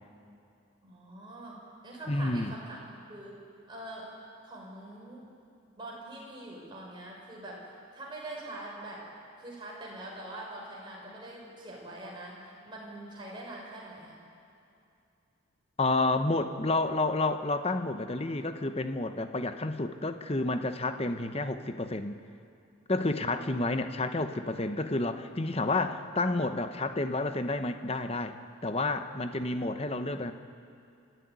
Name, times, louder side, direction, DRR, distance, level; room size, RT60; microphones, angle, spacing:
voice 1, 0.8-3.3 3.7-4.1 4.4-5.3 5.8-9.0 9.4-14.2 23.2-23.5, right 1 dB, 20° right, -4 dB, 5.9 m, -44 dB
voice 2, 2.1-2.5 15.8-22.2 22.9-28.4 28.6-30.3, left 2 dB, 30° left, 9 dB, 0.9 m, -30 dB
28.0 x 14.0 x 9.5 m, 2.6 s
head